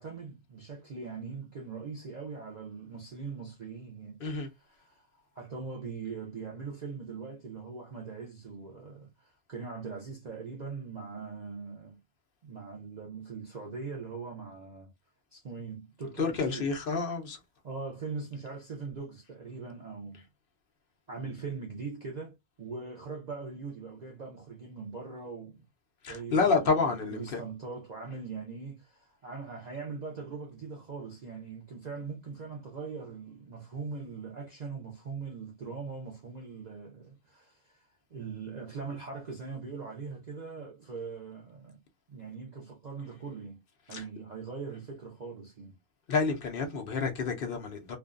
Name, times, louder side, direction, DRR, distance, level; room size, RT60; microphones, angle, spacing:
voice 1, 0.0-4.2 4.6-5.1 5.3-12.0 12.4-14.9 15.3-16.7 17.6-20.2 21.1-25.6 26.1-41.8 42.1-43.6 43.9-45.8, right 4 dB, 55° right, 0.5 m, -41 dB
voice 2, 16.2-17.4 26.0-27.4 43.9-44.0 46.1-48.0, left 4 dB, 60° left, 0.6 m, -29 dB
2.5 x 2.2 x 2.3 m
omnidirectional pair, 1.5 m